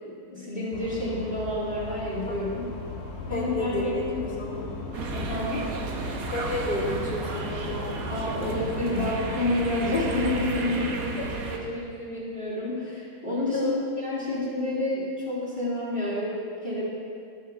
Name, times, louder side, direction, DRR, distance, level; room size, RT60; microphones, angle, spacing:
voice 1, 0.0-2.7 3.3-4.2 5.1-5.7 8.1-13.7 14.0-16.8, left 1 dB, 25° left, -8 dB, 1.9 m, -29 dB
sound 1, 0.7-10.5, left 3 dB, 90° left, 2.3 m, -37 dB
voice 2, 3.3-4.7 6.3-7.9 8.4-8.6 11.2-11.3 13.5-13.8, left 2 dB, 5° left, -9 dB, 1.9 m, -31 dB
sound 2, 4.9-11.6, right 3 dB, 60° right, 1.0 m, -33 dB
13.5 x 6.2 x 3.6 m, 2.3 s
omnidirectional pair, 2.4 m